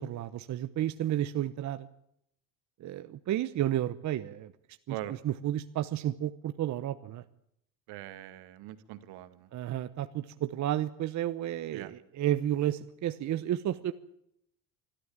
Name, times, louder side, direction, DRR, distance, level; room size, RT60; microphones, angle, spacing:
voice 1, 0.0-1.9 2.8-4.5 4.9-7.2 9.5-13.9, right 12 dB, 45° right, 10 dB, 1.0 m, -32 dB
voice 2, 7.9-9.5 11.7-11.9, right 14 dB, 75° right, 11 dB, 2.1 m, -42 dB
25.0 x 13.5 x 8.8 m, 0.74 s
cardioid pair, 125°, 40 cm